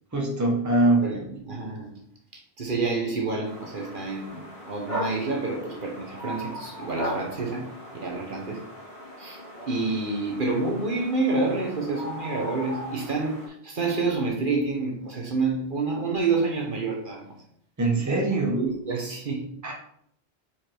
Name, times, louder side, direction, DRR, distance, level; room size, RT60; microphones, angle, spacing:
voice 1, 0.1-1.3 17.8-18.6 19.6-19.7, right 2 dB, 15° right, 0 dB, 1.0 m, -23 dB
voice 2, 1.0-1.9 2.6-7.7 7.9-8.6 9.2-9.4 9.7-17.4 18.0-18.2 18.6-19.5, right 3 dB, 55° right, 0 dB, 1.1 m, -28 dB
sound 1, 3.4-13.5, equal, 40° left, 2.5 m, -38 dB
4.9 x 4.4 x 4.4 m, 0.70 s
omnidirectional pair, 1.1 m